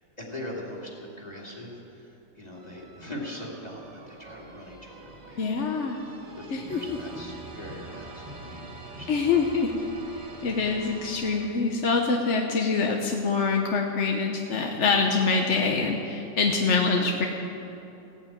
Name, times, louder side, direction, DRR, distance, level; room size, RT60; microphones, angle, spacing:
voice 1, 0.2-9.3 10.8-11.0 16.9-17.1, left 1 dB, 20° left, -3 dB, 2.7 m, -41 dB
sound 1, 2.5-12.0, right 2 dB, 70° right, 2.5 m, -45 dB
voice 2, 5.4-6.0 6.5-6.8 9.1-9.8 10.1-17.2, left 4 dB, 50° left, 2 dB, 1.0 m, -25 dB
16.5 x 9.0 x 8.8 m, 3.0 s
omnidirectional pair, 2.1 m